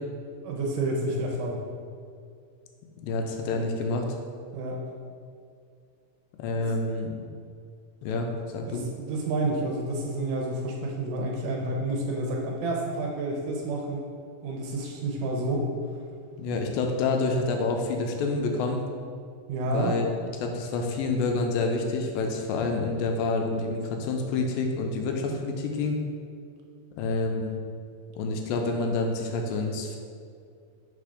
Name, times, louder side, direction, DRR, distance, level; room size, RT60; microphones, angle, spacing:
voice 1, 0.4-1.6 4.5-4.8 8.7-14.0 14.4-15.7 19.5-19.9, right 2 dB, 75° right, 0 dB, 2.1 m, -29 dB
voice 2, 3.0-4.1 6.4-7.1 8.0-8.9 16.4-18.8 19.7-26.0 27.0-27.6 28.2-30.0, left 3 dB, 85° left, 3 dB, 2.3 m, -28 dB
5.1 x 4.1 x 4.9 m, 2.3 s
omnidirectional pair, 4.1 m